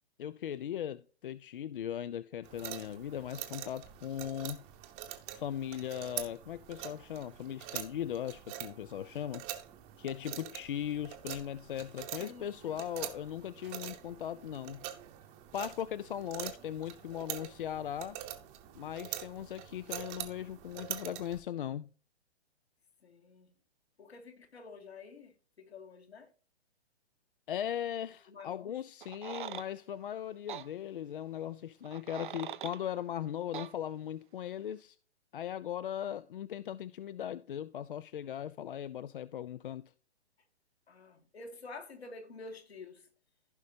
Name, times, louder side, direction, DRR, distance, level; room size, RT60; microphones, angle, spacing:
voice 1, 0.2-4.6 5.3-9.5 10.0-14.9 15.5-18.2 18.7-21.9 27.5-35.0 35.3-39.9, left 10 dB, 55° left, 0.4 m, -38 dB
sound 1, 2.4-21.4, right 12 dB, 20° right, 0.9 m, -45 dB
voice 2, 12.2-12.8 23.0-23.5 24.0-26.3 28.3-28.8 40.9-43.1, left 3 dB, 70° left, 2.2 m, -49 dB
sound 2, 29.0-29.7 30.5-30.7 31.8-32.8 33.5-33.7, right 10 dB, 50° right, 0.5 m, -42 dB
15.5 x 5.2 x 2.7 m
figure-of-eight pair, 125°, 33 cm